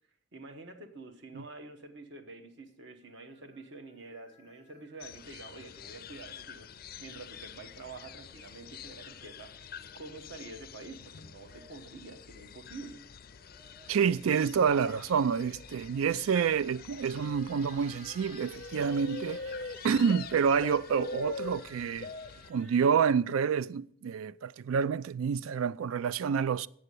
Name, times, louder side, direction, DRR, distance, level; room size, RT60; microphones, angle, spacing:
voice 1, 0.3-6.7 7.0-9.6 9.9-13.0, right 3 dB, 55° right, 1.0 m, -47 dB
sound 1, 3.0-6.7 8.0-10.3 11.1-12.1 13.2-14.4 15.4-22.9, right 1 dB, 35° right, 1.8 m, -57 dB
sound 2, 5.0-22.5, left 5 dB, 45° left, 0.4 m, -45 dB
voice 2, 13.9-19.4 19.8-22.1 22.5-26.7, right 6 dB, 90° right, 0.4 m, -28 dB
7.8 x 7.5 x 8.2 m
head